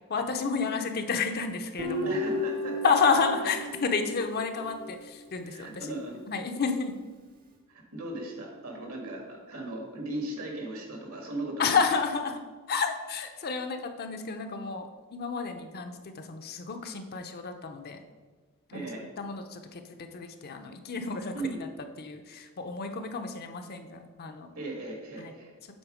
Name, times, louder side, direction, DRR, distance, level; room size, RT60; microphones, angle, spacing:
voice 1, 0.1-2.2 2.8-5.9 6.3-6.9 11.6-12.4 12.7-18.0 18.7-18.9 19.2-21.7 22.0-24.5 25.2-25.3, left 5 dB, 45° left, 6 dB, 0.6 m, -30 dB
Guitar, 1.8-5.1, left 1 dB, 40° right, 0.9 m, -33 dB
voice 2, 2.0-2.8 5.5-6.2 7.7-11.7 18.7-19.0 21.3-21.6 24.5-25.5, right 2 dB, 75° right, 1 dB, 1.8 m, -37 dB
7.9 x 3.9 x 4.9 m, 1.3 s
head